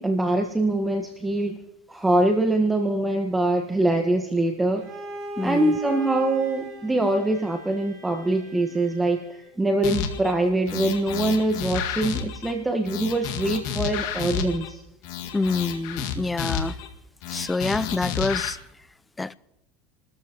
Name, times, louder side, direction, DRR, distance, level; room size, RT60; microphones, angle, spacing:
voice 1, 0.0-1.6 1.9-4.9 5.4-14.8, right 2 dB, 10° right, 1.4 m, -23 dB
Bowed string instrument, 4.8-9.6, equal, 50° right, 4.3 m, -39 dB
voice 2, 5.4-5.8 15.3-16.8 17.3-18.6 19.2-19.3, left 3 dB, 15° left, 0.5 m, -27 dB
sound 1, 9.8-10.3 10.7-12.5 12.9-14.7 15.0-16.9 17.2-18.5, left 8 dB, 70° left, 1.9 m, -30 dB
29.0 x 13.5 x 3.0 m
supercardioid pair, 100°, 0 cm